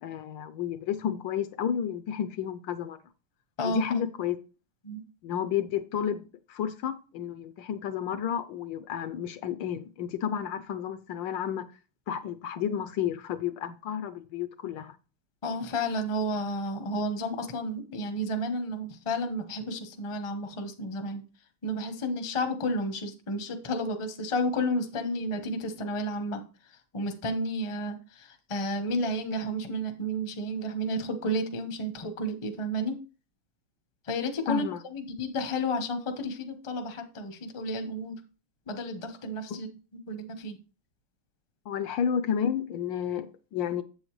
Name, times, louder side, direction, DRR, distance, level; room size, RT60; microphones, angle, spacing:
voice 1, 0.0-3.0 3.6-4.4 5.2-11.6 12.1-14.9 34.5-34.8 41.7-43.8, left 8 dB, 75° left, 1.2 m, -31 dB
voice 2, 15.4-21.2 21.6-33.0 34.0-34.6 34.9-38.1 38.7-39.7 40.1-40.6, equal, 30° left, 0.5 m, -32 dB
7.9 x 7.9 x 3.1 m
omnidirectional pair, 2.3 m